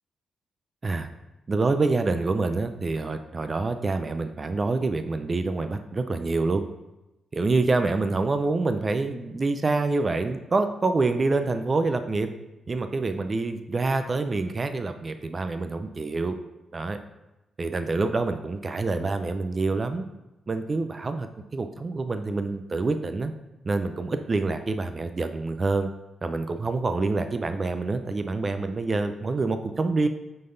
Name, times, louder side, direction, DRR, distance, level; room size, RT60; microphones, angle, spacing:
voice 1, 1.5-6.6 7.3-12.3 12.7-16.4 16.7-17.0 17.6-20.1 20.5-23.3 23.6-25.9 26.2-30.1, right 3 dB, 35° right, 8 dB, 0.5 m, -26 dB
9.1 x 3.9 x 3.8 m, 0.99 s
cardioid pair, 90°, 0 cm